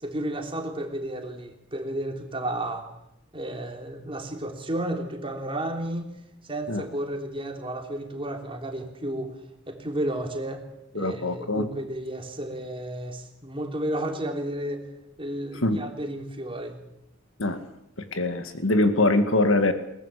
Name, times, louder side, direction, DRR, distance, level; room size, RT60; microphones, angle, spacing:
voice 1, 0.0-2.8 3.3-6.2 6.4-9.3 9.7-10.6 10.9-14.9 15.2-16.7, right 1 dB, 25° right, 3 dB, 3.4 m, -32 dB
voice 2, 10.9-11.7 15.6-15.8 17.4-17.6 18.1-19.7, left 2 dB, 65° left, 8 dB, 2.2 m, -23 dB
22.0 x 19.0 x 8.5 m, 0.83 s
head